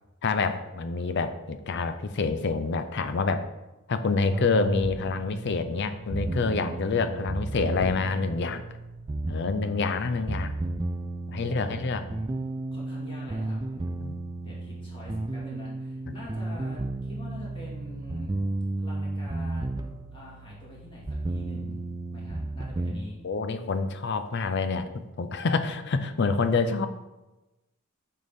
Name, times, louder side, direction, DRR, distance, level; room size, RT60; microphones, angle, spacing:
voice 1, 0.2-3.5 3.9-8.6 9.3-10.5 11.3-12.0 14.0-14.2 16.1-16.2 23.2-26.9, left 4 dB, 50° left, 10 dB, 0.5 m, -27 dB
sound 1, 4.3-22.9, right 2 dB, 20° right, 0.3 m, -33 dB
voice 2, 11.3-11.8 12.7-13.9 14.4-18.3 18.8-21.8 22.1-23.2, left 1 dB, 25° left, -5 dB, 2.1 m, -45 dB
6.5 x 5.5 x 3.6 m, 1.0 s
head